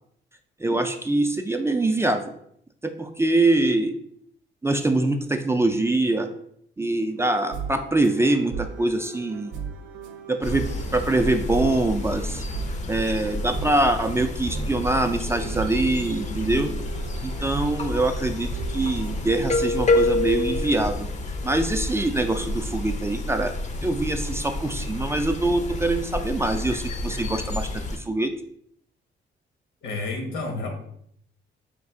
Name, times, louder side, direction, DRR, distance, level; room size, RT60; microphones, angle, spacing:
voice 1, 0.6-2.3 2.8-4.0 4.6-6.3 6.8-9.5 10.3-10.6 10.9-12.4 12.9-16.7 17.2-21.1 21.4-23.5 23.8-28.3, right 2 dB, 15° right, 6 dB, 0.3 m, -24 dB
sound 1, 7.2-19.3, right 6 dB, 80° right, 0.6 m, -37 dB
sound 2, 10.4-28.0, left 2 dB, 35° left, 0.5 m, -29 dB
voice 2, 29.8-30.7, left 3 dB, 80° left, 2 dB, 1.2 m, -30 dB
5.2 x 2.4 x 3.5 m, 0.69 s
cardioid pair, 90°, 20 cm